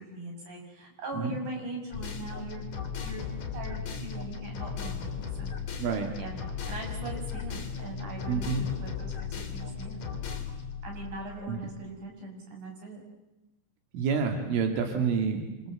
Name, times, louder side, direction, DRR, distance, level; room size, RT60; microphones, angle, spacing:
voice 1, 0.0-2.7 3.0-5.0 5.4-5.5 5.8-6.4 6.7-10.0 10.8-13.0, right 2 dB, 40° right, 1 dB, 7.8 m, -41 dB
sound 1, 1.9-11.8, left 6 dB, 40° left, 3.6 m, -36 dB
voice 2, 8.3-8.6 11.5-11.6 13.9-15.7, right 6 dB, 85° right, 4 dB, 4.9 m, -28 dB
27.0 x 27.0 x 7.9 m, 0.97 s
omnidirectional pair, 5.5 m